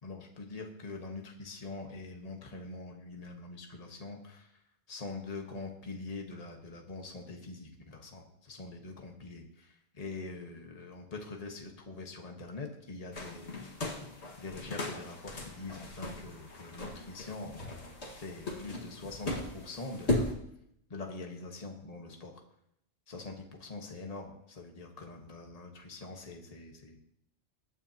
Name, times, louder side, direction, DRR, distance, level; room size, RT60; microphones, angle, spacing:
voice 1, 0.0-4.6 4.9-13.6 14.4-20.3 20.9-22.3 23.1-27.0, left 3 dB, 35° left, 2 dB, 1.5 m, -44 dB
sound 1, 13.1-20.3, left 1 dB, 80° left, 2.0 m, -37 dB
22.5 x 9.1 x 2.9 m, 0.75 s
omnidirectional pair, 1.1 m